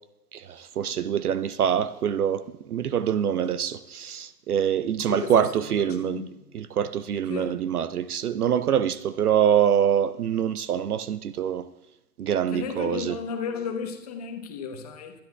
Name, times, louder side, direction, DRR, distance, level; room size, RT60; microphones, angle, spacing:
voice 1, 0.3-6.2 6.5-11.7 12.2-13.2, right 9 dB, 65° right, 0.6 m, -25 dB
voice 2, 5.1-6.3 7.3-7.5 12.5-15.1, left 6 dB, 25° left, 0.9 m, -34 dB
22.5 x 10.5 x 2.4 m
hypercardioid pair, 155°, 50 cm